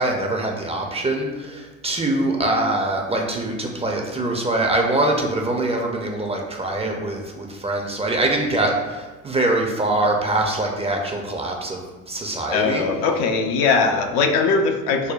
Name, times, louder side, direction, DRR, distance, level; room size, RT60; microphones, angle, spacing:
voice 1, 0.0-12.8, right 2 dB, 15° right, 1 dB, 0.5 m, -23 dB
voice 2, 12.5-15.1, left 4 dB, 60° left, 4 dB, 0.6 m, -20 dB
6.2 x 2.1 x 2.4 m, 1.2 s
hypercardioid pair, 65°, 40 cm